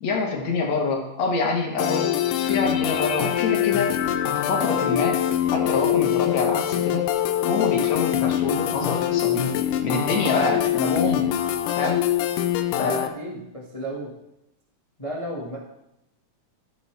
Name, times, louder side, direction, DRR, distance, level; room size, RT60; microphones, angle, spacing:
voice 1, 0.0-3.9 4.3-5.2 5.5-7.1 7.4-9.5 9.8-11.3 11.8-12.0 12.8-12.9, left 3 dB, 60° left, 1 dB, 2.4 m, -26 dB
sound 1, 1.8-13.1, left 11 dB, 80° left, 2.1 m, -24 dB
voice 2, 12.7-14.1 15.0-15.6, equal, 30° left, -3 dB, 0.6 m, -33 dB
14.0 x 7.2 x 3.4 m, 0.85 s
omnidirectional pair, 3.7 m